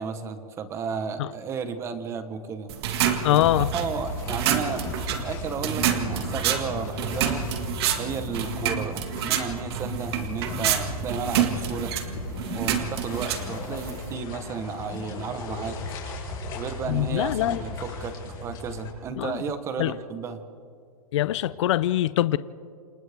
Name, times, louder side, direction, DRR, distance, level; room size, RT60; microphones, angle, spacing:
voice 1, 0.0-2.7 3.3-7.4 8.0-11.9 12.5-15.8 16.5-20.4, right 6 dB, 15° right, 1.0 m, -33 dB
sound 1, 2.7-14.2, right 9 dB, 45° right, 1.9 m, -28 dB
voice 2, 3.2-3.7 16.9-17.6 19.2-19.3 19.8-19.9 21.1-22.4, left 13 dB, 50° left, 0.5 m, -23 dB
sound 2, 3.4-18.9, left 2 dB, 25° left, 6.7 m, -36 dB
28.5 x 26.0 x 3.5 m
hypercardioid pair, 165°, 19 cm